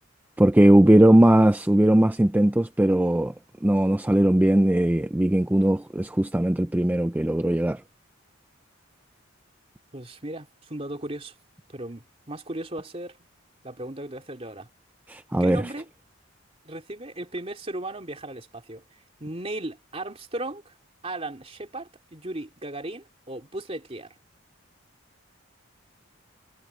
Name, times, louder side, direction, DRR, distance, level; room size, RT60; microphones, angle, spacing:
voice 1, 0.4-3.3 3.6-7.8 15.1-15.6, right 1 dB, 10° right, 0.3 m, -19 dB
voice 2, 9.9-11.3 11.7-13.2 13.6-14.7 15.4-15.9 16.6-18.8 19.2-20.7 21.0-24.1, right 1 dB, 30° right, 3.0 m, -36 dB
head